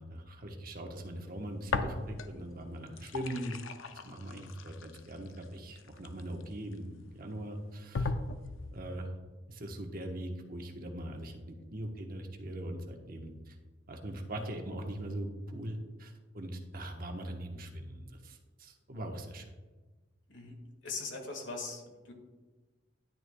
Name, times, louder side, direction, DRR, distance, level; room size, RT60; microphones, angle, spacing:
voice 1, 0.0-3.6 4.0-8.1 8.7-9.1 9.5-13.5 13.9-19.5, right 1 dB, 45° right, 3 dB, 1.0 m, -41 dB
sound 1, 1.7-2.5 2.8-6.7 7.3-7.4 7.9-8.8, left 3 dB, 90° left, 0.6 m, -37 dB
voice 2, 20.3-22.1, left 3 dB, 70° left, 3 dB, 1.7 m, -41 dB
10.5 x 9.5 x 2.2 m, 1.3 s
head